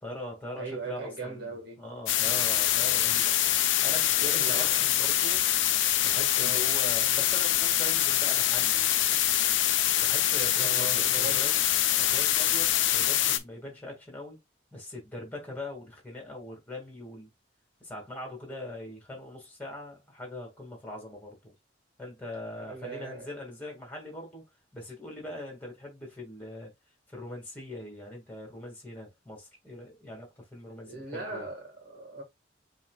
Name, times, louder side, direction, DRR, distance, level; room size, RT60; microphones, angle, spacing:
voice 1, 0.0-3.3 3.8-5.4 6.0-8.9 10.0-11.6 12.0-14.4 14.7-17.3 17.8-21.5 22.0-24.4 24.7-26.7 27.1-31.5, left 1 dB, 10° left, 2.0 m, -41 dB
voice 2, 0.5-1.9 4.2-4.9 6.4-6.7 10.6-11.5 22.6-23.3 30.8-32.2, right 3 dB, 55° right, 1.7 m, -39 dB
sound 1, 2.1-13.4, left 12 dB, 70° left, 0.6 m, -25 dB
7.3 x 3.0 x 2.3 m
head